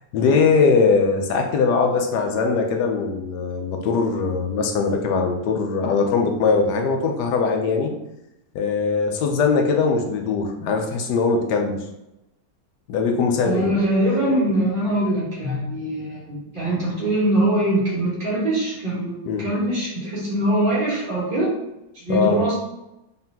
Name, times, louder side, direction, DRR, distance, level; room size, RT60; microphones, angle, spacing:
voice 1, 0.0-7.9 8.5-11.8 12.9-13.7 19.3-19.4 22.1-22.4, left 4 dB, 85° left, 3 dB, 1.3 m, -21 dB
voice 2, 13.4-21.5 21.9-22.6, right 1 dB, 30° right, -7 dB, 1.6 m, -22 dB
4.1 x 3.7 x 2.8 m, 0.90 s
omnidirectional pair, 1.7 m